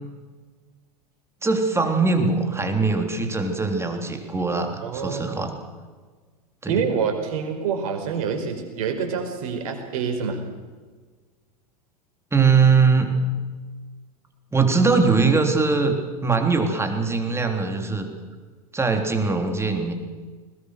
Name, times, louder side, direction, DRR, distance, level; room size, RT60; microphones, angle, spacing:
voice 1, 1.4-5.5 6.6-6.9 12.3-13.1 14.5-18.1 18.7-19.9, right 4 dB, 15° right, 5 dB, 3.5 m, -21 dB
voice 2, 4.8-5.4 6.7-10.4, right 6 dB, 70° right, 5 dB, 5.0 m, -27 dB
21.0 x 21.0 x 6.6 m, 1.4 s
hypercardioid pair, 95°, 20 cm